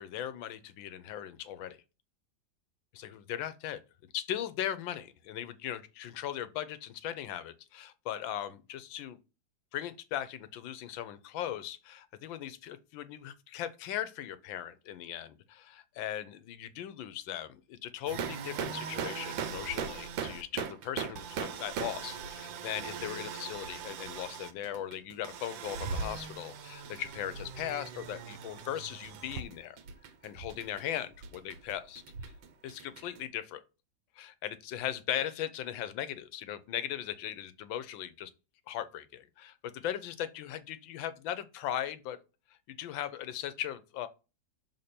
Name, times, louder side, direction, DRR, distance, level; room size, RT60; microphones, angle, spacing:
voice 1, 0.0-1.8 2.9-3.8 4.1-9.2 9.7-29.8 30.2-32.3 32.6-33.6 34.2-38.3 38.7-42.2 42.7-44.1, left 11 dB, 85° left, 1.4 m, -38 dB
sound 1, 18.1-33.2, right 6 dB, 80° right, 1.5 m, -39 dB
6.6 x 3.7 x 4.3 m
omnidirectional pair, 2.1 m